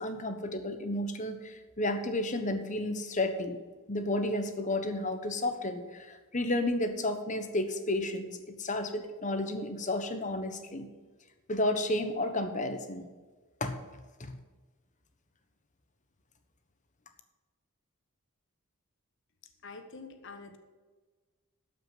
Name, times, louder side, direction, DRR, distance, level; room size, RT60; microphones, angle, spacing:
voice 1, 0.0-3.6 3.9-10.9 11.5-13.0 13.6-13.8 14.2-14.3, left 1 dB, 35° left, 8 dB, 1.1 m, -32 dB
voice 2, 19.6-20.6, left 4 dB, 55° left, 6 dB, 1.3 m, -46 dB
12.5 x 5.9 x 7.8 m, 1.3 s
head